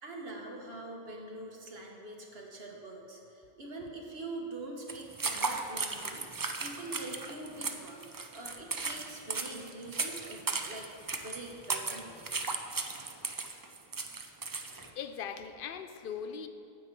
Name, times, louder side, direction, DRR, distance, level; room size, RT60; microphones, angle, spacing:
voice 1, 0.0-10.9 11.2-12.2, right 2 dB, 75° right, 0 dB, 1.4 m, -44 dB
sound 1, 4.9-14.9, right 4 dB, 35° right, 0.3 m, -36 dB
voice 2, 14.7-16.5, left 7 dB, 65° left, 9 dB, 0.7 m, -41 dB
9.2 x 7.8 x 4.5 m, 2.6 s
omnidirectional pair, 1.0 m